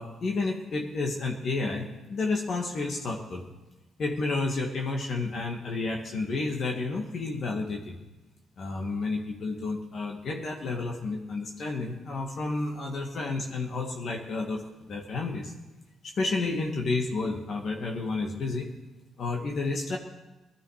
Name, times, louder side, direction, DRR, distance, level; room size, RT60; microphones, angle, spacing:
voice 1, 0.0-3.4 4.0-8.0 8.6-14.6 14.9-15.5 16.0-18.7 19.2-20.0, left 3 dB, 55° left, 1 dB, 2.1 m, -31 dB
20.0 x 13.0 x 5.1 m, 1.1 s
cardioid pair, 90°, 0 cm